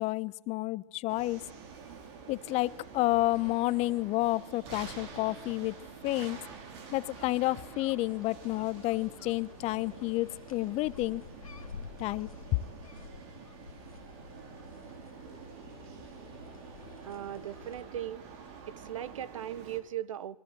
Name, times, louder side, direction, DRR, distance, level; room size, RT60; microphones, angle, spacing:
voice 1, 0.0-1.4 2.3-5.7 6.0-6.4 6.9-11.2 12.0-12.3, left 19 dB, 40° left, 1.0 m, -30 dB
sound 1, 1.1-19.8, right 5 dB, 50° right, 5.3 m, -48 dB
sound 2, 5.0-17.8, left 6 dB, 85° left, 1.7 m, -51 dB
voice 2, 17.0-18.2 18.7-20.4, right 11 dB, 70° right, 1.3 m, -38 dB
30.0 x 23.5 x 7.8 m
hypercardioid pair, 105°, 17 cm